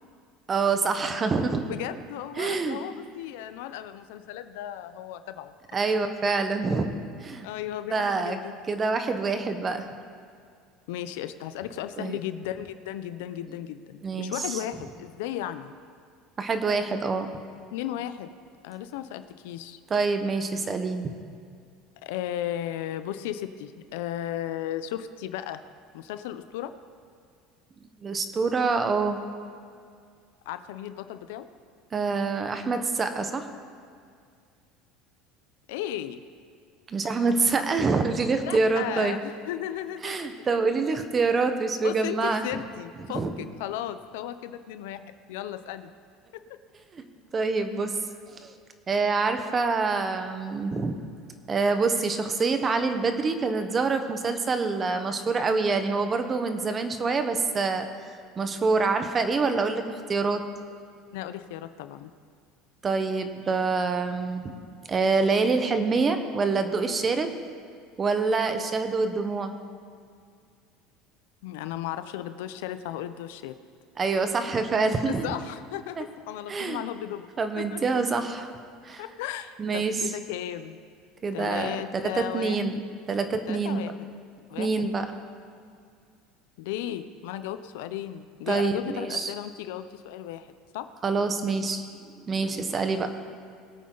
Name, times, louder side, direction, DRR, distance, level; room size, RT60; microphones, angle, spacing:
voice 1, 0.5-1.7 2.4-2.8 5.7-6.9 7.2-7.5 7.9-8.4 8.7-9.9 12.0-12.2 14.0-14.6 16.4-17.3 19.9-21.1 28.0-29.2 31.9-33.4 36.9-39.2 40.0-42.5 43.1-43.3 46.9-47.0 47.3-48.0 48.3-48.5 48.9-51.0 51.5-57.9 58.4-60.4 62.8-64.6 64.9-67.3 68.0-69.5 74.0-75.3 76.0-76.1 76.5-76.8 77.4-78.5 78.8-79.0 79.6-80.1 81.2-82.8 83.1-83.8 84.6-85.1 88.5-89.3 91.0-91.8 92.3-93.1, right 4 dB, 25° right, 8 dB, 1.1 m, -26 dB
voice 2, 1.7-5.5 7.4-8.6 10.9-15.7 17.7-18.3 18.6-19.8 22.0-25.6 25.9-26.7 30.5-31.5 35.7-36.2 38.4-40.1 41.8-45.0 45.3-45.9 46.3-46.6 61.1-62.1 71.4-73.5 75.1-77.3 77.6-78.2 79.0-80.8 81.3-82.6 83.5-84.1 84.5-84.9 86.6-90.5 90.7-90.9, left 11 dB, 85° left, 11 dB, 0.7 m, -35 dB
21.5 x 8.6 x 4.0 m, 2.2 s
supercardioid pair, 125°, 0 cm